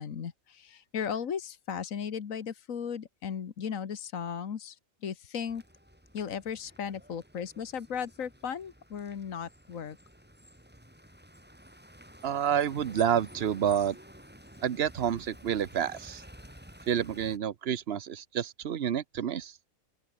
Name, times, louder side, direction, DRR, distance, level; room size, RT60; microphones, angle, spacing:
voice 1, 0.0-5.6 6.1-10.0, left 7 dB, 80° left, 1.7 m, -36 dB
sound 1, 5.5-17.4, equal, 5° right, 5.0 m, -52 dB
voice 2, 12.2-13.9 14.6-16.2 16.9-19.5, right 9 dB, 55° right, 1.0 m, -29 dB
open air
omnidirectional pair, 1.4 m